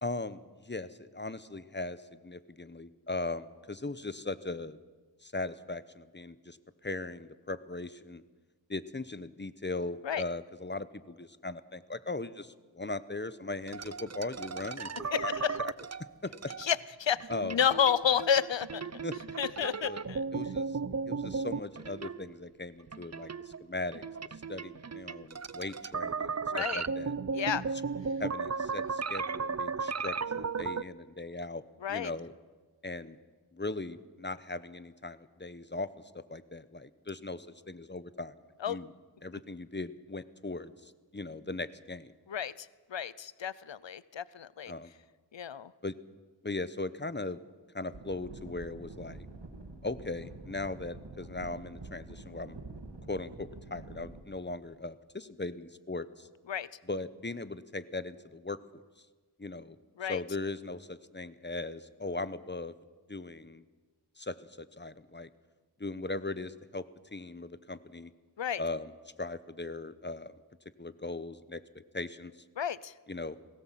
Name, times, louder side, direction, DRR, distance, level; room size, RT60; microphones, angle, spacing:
voice 1, 0.0-4.8 5.2-8.2 8.7-14.9 15.2-15.3 15.6-15.7 16.2-16.3 17.3-17.6 19.0-19.1 19.9-20.0 20.3-20.8 21.1-24.0 24.5-27.2 28.2-31.6 31.9-32.3 32.8-33.2 33.5-35.9 36.1-38.3 38.7-38.9 39.2-42.1 44.7-44.9 45.8-46.0 46.4-47.4 47.7-49.3 49.8-52.6 53.1-56.3 56.8-58.8 59.4-59.8 60.0-62.7 63.1-63.6 64.2-65.3 65.8-66.9 67.1-68.1 68.6-68.9 69.2-70.4 70.8-71.6 71.9-72.3 73.1-73.4, left 2 dB, 25° left, 14 dB, 1.0 m, -39 dB
sound 1, 13.7-16.7 17.2-22.5 22.9-30.8, right 5 dB, 40° right, 0.6 m, -36 dB
voice 2, 15.1-15.6 16.6-18.8 19.4-20.2 26.5-26.8 27.3-27.6 31.8-32.1 38.6-38.8 42.3-44.7 45.3-45.7 56.5-56.7 60.0-60.2 68.4-68.6 72.6-72.9, left 8 dB, 90° left, 19 dB, 0.7 m, -31 dB
sound 2, 47.9-54.2, right 2 dB, 70° right, 2.4 m, -47 dB
20.5 x 17.5 x 7.6 m, 1.3 s
wide cardioid pair, 45°, 43 cm